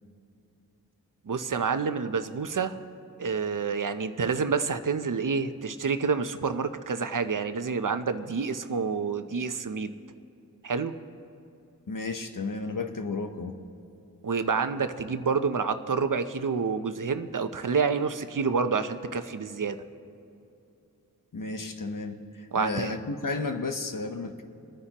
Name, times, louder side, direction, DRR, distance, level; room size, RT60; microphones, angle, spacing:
voice 1, 1.3-2.8 3.2-9.9 10.6-10.9 14.2-19.8 22.5-23.0, right 5 dB, 60° right, 9 dB, 0.7 m, -28 dB
voice 2, 11.9-13.6 21.3-22.2 22.5-24.4, left 3 dB, 60° left, 6 dB, 1.0 m, -32 dB
25.0 x 9.7 x 3.0 m, 2.7 s
wide cardioid pair, 50°, 37 cm